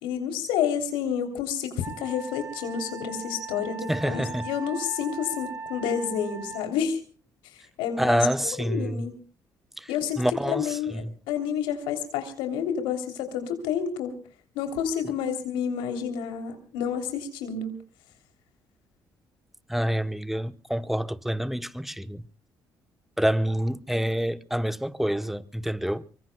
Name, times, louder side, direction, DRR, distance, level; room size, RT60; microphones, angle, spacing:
voice 1, 0.0-7.0 7.8-9.2 9.9-10.2 10.5-14.2 14.5-17.7, left 8 dB, 90° left, 3.2 m, -29 dB
Wind instrument woodwind instrument, 1.8-6.7, right 4 dB, 25° right, 2.2 m, -39 dB
voice 2, 3.9-4.5 8.0-9.1 9.8-9.9 10.2-11.1 19.7-22.3 23.2-26.0, equal, 5° right, 1.0 m, -27 dB
25.0 x 23.5 x 2.3 m
supercardioid pair, 60°, 9 cm